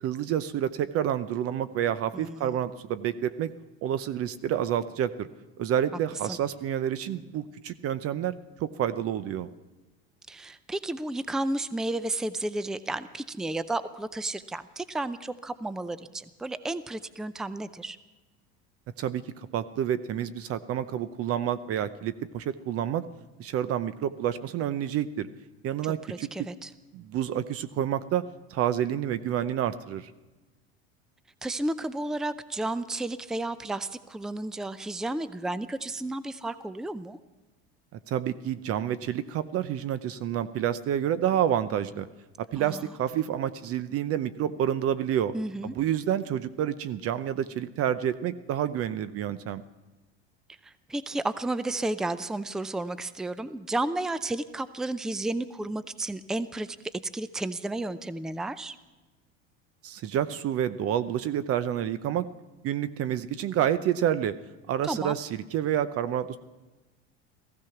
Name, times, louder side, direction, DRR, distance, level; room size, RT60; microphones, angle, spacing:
voice 1, 0.0-3.5 3.8-5.3 5.6-9.5 19.0-23.1 23.4-25.3 25.6-26.5 26.9-30.1 38.1-42.1 42.4-45.3 45.6-49.6 59.8-62.3 62.6-64.3 64.7-66.4, right 10 dB, 45° right, 14 dB, 0.7 m, -29 dB
voice 2, 2.1-2.6 6.3-6.4 10.3-18.0 26.1-26.7 31.4-37.2 42.6-42.9 45.3-45.7 50.6-58.8 64.8-65.2, right 2 dB, ahead, 14 dB, 0.5 m, -32 dB
15.5 x 15.0 x 5.8 m, 1.1 s
supercardioid pair, 100°, 31 cm